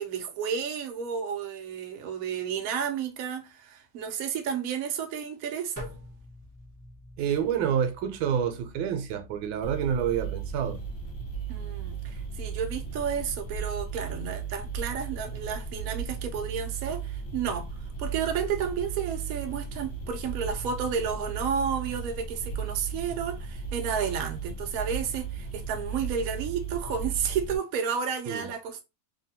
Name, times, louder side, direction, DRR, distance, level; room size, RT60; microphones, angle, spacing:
voice 1, 0.0-5.9 11.5-17.7 18.0-28.8, right 7 dB, 65° right, 0.9 m, -32 dB
sound 1, 5.8-12.0, left 1 dB, 15° right, 0.6 m, -48 dB
voice 2, 7.2-10.8 28.3-28.5, right 8 dB, 90° right, 1.4 m, -28 dB
sound 2, 9.6-27.6, right 6 dB, 50° left, 1.2 m, -36 dB
3.3 x 2.2 x 2.7 m
omnidirectional pair, 2.1 m